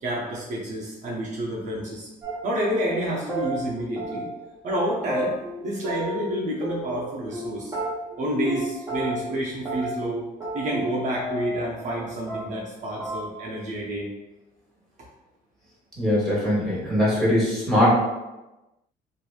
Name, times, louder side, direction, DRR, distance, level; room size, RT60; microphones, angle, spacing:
voice 1, 0.0-2.1 2.4-4.3 4.6-5.3 5.6-7.8 8.2-10.3 10.5-14.1, right 1 dB, 45° right, -5 dB, 0.6 m, -29 dB
sound 1, 2.2-2.6 2.9-3.0 3.3-3.5 4.0-4.5 4.7-4.8 5.1-6.3 6.6-7.4 7.7-8.2 8.5-8.6 8.9-9.3 9.6-10.1 10.4-12.0 12.3-12.7 13.0-13.2, right 1 dB, 20° right, 1.1 m, -32 dB
voice 2, 16.0-17.9, left 1 dB, 5° left, -8 dB, 1.4 m, -21 dB
3.0 x 2.5 x 2.4 m, 1.0 s
cardioid pair, 110°, 17 cm